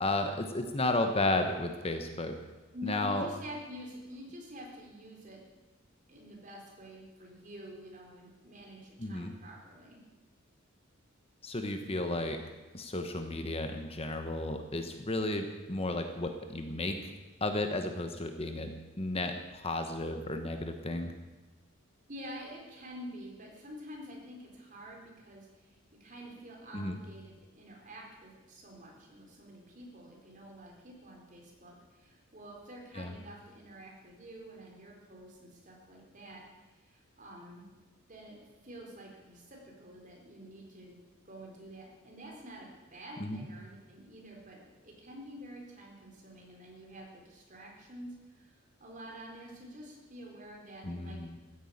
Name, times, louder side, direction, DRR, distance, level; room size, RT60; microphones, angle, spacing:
voice 1, 0.0-2.4 2.8-3.3 9.0-9.3 11.4-12.4 12.7-17.1 17.4-21.1 26.7-26.9 33.0-33.1 43.2-43.4 50.8-51.4, left 2 dB, 30° left, 6 dB, 1.0 m, -33 dB
voice 2, 2.7-5.4 6.1-10.0 22.1-36.4 36.7-37.7 38.1-41.0 41.2-44.6 44.8-51.2, equal, 40° right, -1 dB, 4.2 m, -48 dB
14.5 x 10.0 x 8.7 m, 1.2 s
head